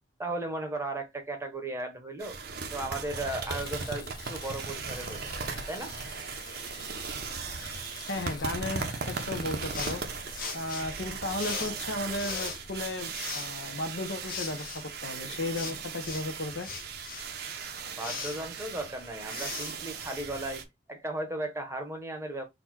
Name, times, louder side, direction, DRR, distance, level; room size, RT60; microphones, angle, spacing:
voice 1, 0.2-2.4 2.7-5.3 5.7-5.9 18.0-20.6 20.9-22.5, right 2 dB, 15° right, 0.9 m, -36 dB
Water tap faucet / Bathtub (filling or washing), 2.2-2.3 2.8-15.2 15.9-16.0 16.5-16.6, left 4 dB, 20° left, 0.6 m, -49 dB
sound 1, 2.2-20.6, right 5 dB, 55° right, 0.7 m, -38 dB
voice 2, 8.1-10.0 10.5-16.7, left 2 dB, 70° left, 0.9 m, -35 dB
sound 2, 9.7-20.6, left 5 dB, 50° left, 1.2 m, -41 dB
4.0 x 2.3 x 4.5 m
head